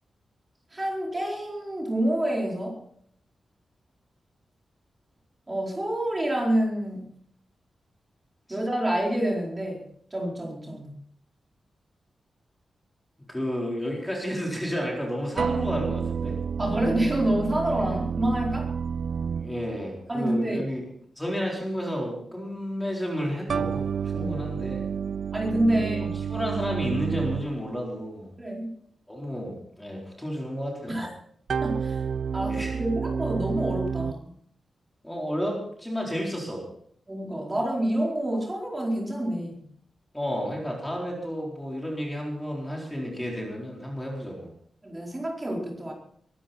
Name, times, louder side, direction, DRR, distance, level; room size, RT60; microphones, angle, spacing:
voice 1, 0.7-2.8 5.5-7.0 8.5-9.8 10.1-11.0 16.6-18.7 20.1-20.6 24.1-24.4 25.3-26.1 28.4-28.7 30.9-31.1 31.6-32.0 32.3-34.3 37.1-39.6 44.8-45.9, right 1 dB, 20° right, -1 dB, 4.5 m, -27 dB
voice 2, 13.3-16.4 17.8-18.0 19.4-20.8 21.2-24.8 25.7-25.9 26.1-28.3 29.1-31.0 32.4-32.8 35.0-36.6 40.1-44.5, equal, 5° left, -2 dB, 4.3 m, -32 dB
sound 1, 15.4-20.0 23.5-27.8 31.5-34.1, right 6 dB, 60° right, 0.6 m, -30 dB
22.5 x 13.0 x 4.4 m, 0.64 s
wide cardioid pair, 165°, 0 cm